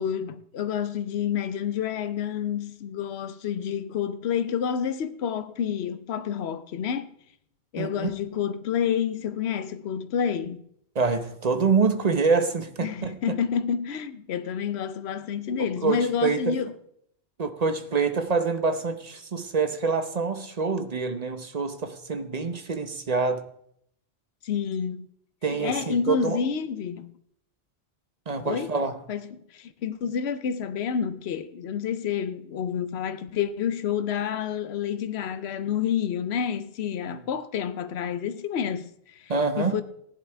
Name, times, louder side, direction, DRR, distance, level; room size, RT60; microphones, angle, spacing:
voice 1, 0.0-7.1 7.7-10.6 12.8-16.7 24.4-25.1 25.6-27.1 28.4-28.7 29.1-39.8, left 8 dB, 80° left, 1.0 m, -29 dB
voice 2, 7.8-8.1 10.9-13.2 15.8-16.5 17.4-23.4 25.4-26.4 28.3-29.0 37.1-37.2 39.3-39.8, right 4 dB, 40° right, 0.9 m, -26 dB
16.0 x 11.0 x 3.4 m
omnidirectional pair, 1.1 m